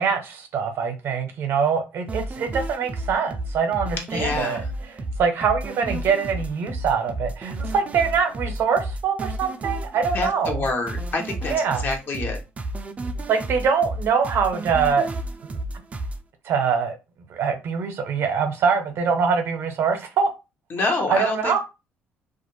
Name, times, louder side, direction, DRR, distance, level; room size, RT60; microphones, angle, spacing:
voice 1, 0.0-10.7 11.4-11.9 13.3-15.1 15.4-15.5 16.4-17.0 17.3-20.3 21.1-21.6, right 6 dB, 65° right, 0.7 m, -24 dB
sound 1, 2.1-16.2, right 1 dB, 30° right, 0.4 m, -32 dB
voice 2, 4.1-4.6 10.1-11.5 11.8-12.4 20.7-21.6, left 3 dB, 50° left, 0.9 m, -26 dB
2.4 x 2.1 x 3.1 m
supercardioid pair, 80°, 5 cm